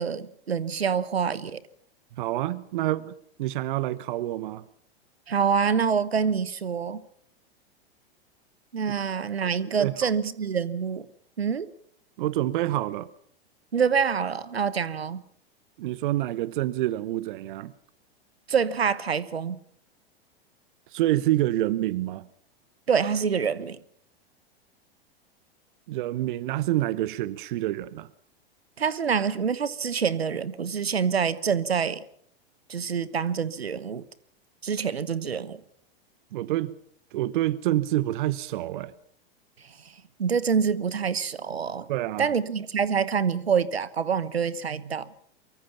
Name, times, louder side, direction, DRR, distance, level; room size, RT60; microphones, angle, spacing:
voice 1, 0.0-1.6 5.3-7.0 8.7-11.1 11.4-11.7 13.7-15.2 18.5-19.6 22.9-23.8 28.8-32.0 32.7-34.0 34.6-35.6 40.2-41.9 42.2-45.1, right 6 dB, 80° right, 1.2 m, -26 dB
voice 2, 2.2-4.6 9.4-10.1 12.2-13.1 15.8-17.7 20.9-22.3 25.9-28.1 36.3-36.7 37.1-38.9 41.9-42.3, right 15 dB, 55° right, 1.0 m, -27 dB
24.0 x 23.5 x 5.8 m
figure-of-eight pair, 95°, 31 cm